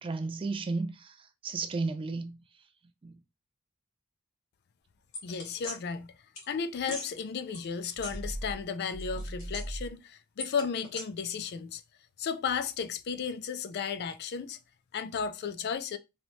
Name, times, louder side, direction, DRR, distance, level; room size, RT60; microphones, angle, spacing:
voice 1, 0.0-2.4 3.0-3.1, right 3 dB, 25° right, 0.3 m, -33 dB
sound 1, 5.1-5.8 6.4-6.5 6.8-7.1 7.5-8.6 8.9-9.9 10.4-11.0, equal, 75° left, 1.5 m, -38 dB
voice 2, 5.2-6.2 6.5-11.8 12.2-14.6 14.9-16.0, left 6 dB, 50° left, 0.4 m, -34 dB
3.1 x 2.9 x 2.7 m
head